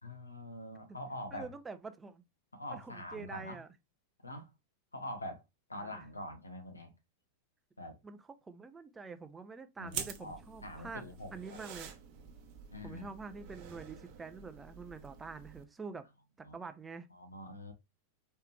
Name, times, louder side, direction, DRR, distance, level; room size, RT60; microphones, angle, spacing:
voice 1, 0.0-1.5 2.5-3.6 4.2-4.5 4.9-5.4 5.7-6.9 7.8-8.0 9.8-11.6 12.7-13.1 16.4-16.6 17.1-17.7, left 1 dB, 80° left, 1.0 m, -44 dB
voice 2, 1.3-2.2 2.7-3.7 5.8-6.0 8.0-11.1 11.3-11.9 12.8-16.1 16.4-17.1, right 4 dB, 15° right, 0.5 m, -46 dB
sound 1, 9.9-15.6, right 8 dB, 40° right, 0.8 m, -47 dB
4.8 x 3.3 x 3.1 m
figure-of-eight pair, 90°, 0 cm